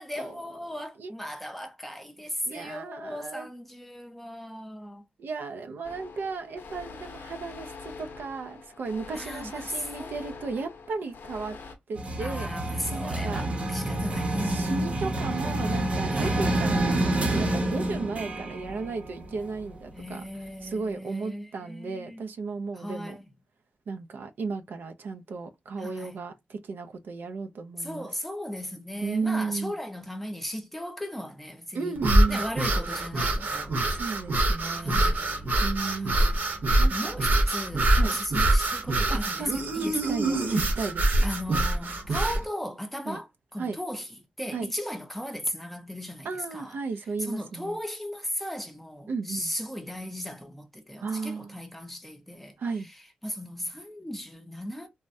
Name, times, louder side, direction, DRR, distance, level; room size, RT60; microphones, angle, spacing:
voice 1, 0.0-5.0 9.1-10.4 12.2-15.0 16.1-16.4 19.9-22.2 22.8-23.2 25.8-26.2 27.8-32.0 32.3-34.0 34.8-35.5 36.0-36.5 36.9-40.7 41.2-44.1 44.4-46.8 47.2-52.6 53.2-54.9, equal, 5° left, 0.6 m, -37 dB
voice 2, 2.4-3.5 5.2-11.6 11.9-12.5 12.9-13.4 14.4-20.2 20.6-23.2 23.9-28.1 29.0-29.7 31.7-32.4 33.9-35.0 35.6-36.3 36.8-37.1 37.9-38.2 39.1-39.5 39.8-41.2 43.1-43.2 43.6-43.8 44.5-44.7 46.2-47.8 49.1-49.5 51.0-51.6 52.6-52.9, right 4 dB, 85° right, 0.5 m, -34 dB
sound 1, 5.8-11.8, left 4 dB, 75° left, 0.6 m, -44 dB
sound 2, 12.0-19.9, right 1 dB, 35° right, 0.8 m, -28 dB
sound 3, 32.0-42.4, right 1 dB, 65° right, 0.9 m, -24 dB
3.4 x 2.1 x 2.6 m
wide cardioid pair, 130°, 3 cm